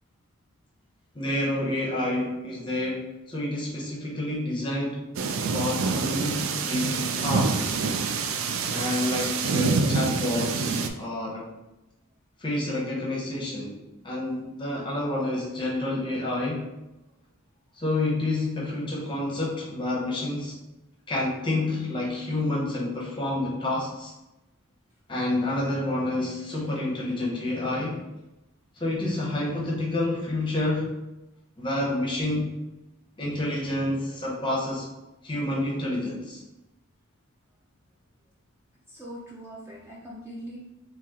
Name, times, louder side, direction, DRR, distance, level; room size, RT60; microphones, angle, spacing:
voice 1, 1.1-5.0 5.5-7.8 8.7-11.5 12.4-16.7 17.8-20.6 21.1-24.1 25.1-28.0 28.8-30.9 31.6-32.6 33.2-34.9 35.2-36.4, left 1 dB, 20° left, -4 dB, 0.8 m, -29 dB
sound 1, 5.2-10.9, right 4 dB, 65° right, 0.3 m, -26 dB
voice 2, 38.9-40.6, equal, 10° right, -6 dB, 0.5 m, -41 dB
3.0 x 2.9 x 3.6 m, 0.97 s
head